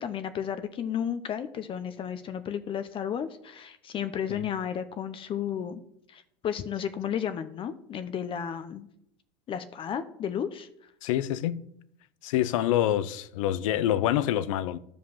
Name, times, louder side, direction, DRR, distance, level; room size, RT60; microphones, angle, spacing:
voice 1, 0.0-5.8 6.1-8.9 9.5-10.9, left 8 dB, 35° left, 0.7 m, -33 dB
voice 2, 11.0-11.6 12.2-14.8, left 12 dB, 85° left, 0.7 m, -26 dB
11.0 x 5.2 x 7.1 m
supercardioid pair, 130°, 16 cm